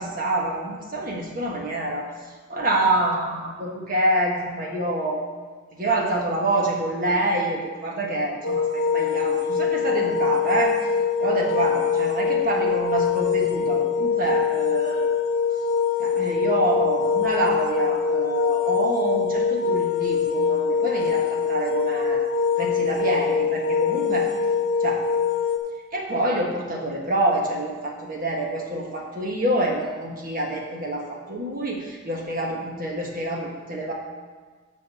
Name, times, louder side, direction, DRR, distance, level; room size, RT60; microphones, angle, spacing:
voice 1, 0.0-2.1 2.5-5.2 5.7-10.7 11.2-15.1 16.0-22.2 22.6-24.3 24.8-25.0 25.9-33.9, right 1 dB, 45° right, -1 dB, 1.4 m, -26 dB
sound 1, 8.4-25.6, left 6 dB, 60° left, 1.4 m, -23 dB
7.0 x 5.3 x 6.9 m, 1.5 s
head